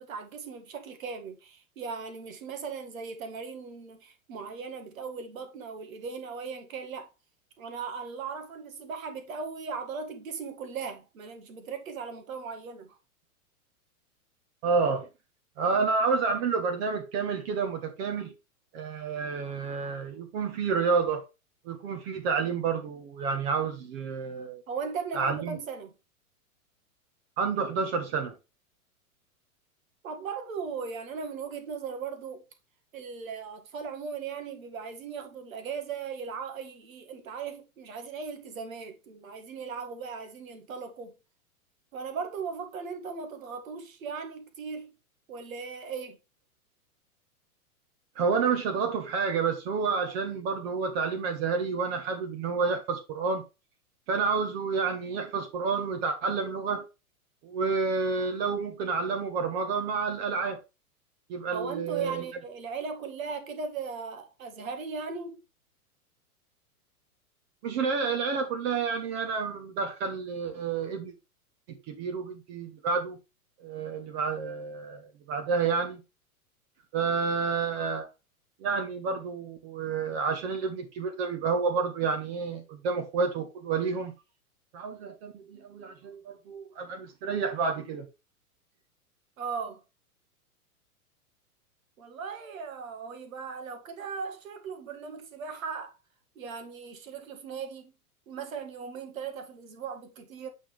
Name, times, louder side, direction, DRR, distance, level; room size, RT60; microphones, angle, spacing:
voice 1, 0.0-7.1 7.6-12.9 24.7-25.9 30.0-32.5 32.9-41.1 41.9-44.9 45.3-46.2 61.5-65.4 89.4-89.8 92.0-95.9 96.4-97.9 98.3-100.5, right 5 dB, 65° right, 2.0 m, -38 dB
voice 2, 14.6-15.1 15.6-18.3 18.7-21.2 21.6-24.6 25.1-25.6 27.4-28.3 48.1-53.4 54.1-56.8 57.4-60.6 61.3-62.2 67.6-71.1 71.7-73.2 73.6-76.0 76.9-78.1 78.6-84.1 84.7-88.1, right 5 dB, 45° right, 1.6 m, -29 dB
8.5 x 5.5 x 3.3 m
figure-of-eight pair, 100°, 44 cm